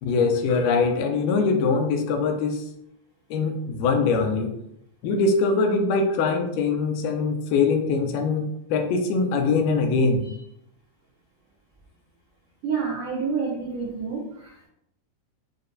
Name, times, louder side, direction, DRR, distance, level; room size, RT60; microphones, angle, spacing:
voice 1, 0.0-2.6 3.3-4.5 5.0-10.2, left 4 dB, 85° left, 5 dB, 2.2 m, -22 dB
voice 2, 12.6-14.2, right 5 dB, 85° right, -3 dB, 1.4 m, -27 dB
6.6 x 2.2 x 2.5 m, 0.77 s
omnidirectional pair, 3.8 m